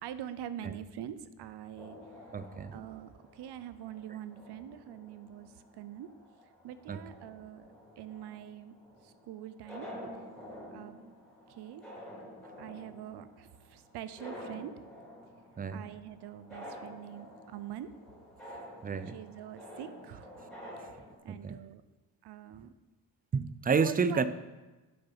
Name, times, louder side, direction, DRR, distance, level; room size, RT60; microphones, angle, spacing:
voice 1, 0.0-2.0 2.7-6.1 6.4-8.7 9.0-9.9 10.7-11.0 11.5-11.8 12.6-14.7 15.7-17.9 19.1-20.3 20.8-21.8 22.2-22.7 23.8-24.3, right 11 dB, 80° right, 13 dB, 0.6 m, -44 dB
sound 1, 1.8-21.2, equal, ahead, 3.1 m, -50 dB
voice 2, 2.3-2.8 6.9-7.0 15.6-15.8 18.8-19.2 21.3-21.5 23.3-24.2, right 5 dB, 25° right, 13 dB, 0.3 m, -30 dB
7.9 x 6.7 x 5.6 m, 1.2 s
cardioid pair, 130°, 40 cm